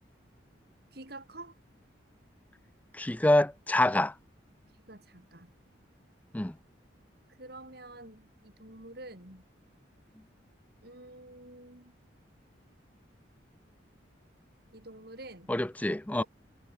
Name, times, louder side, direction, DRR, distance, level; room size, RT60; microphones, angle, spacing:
voice 1, 0.9-1.6 4.9-5.5 7.4-9.4 10.8-11.9 14.7-15.5 16.2-16.3, right 2 dB, 55° right, 6.6 m, -48 dB
voice 2, 3.0-4.1 6.3-6.5 15.5-16.2, left 1 dB, 10° left, 0.4 m, -26 dB
head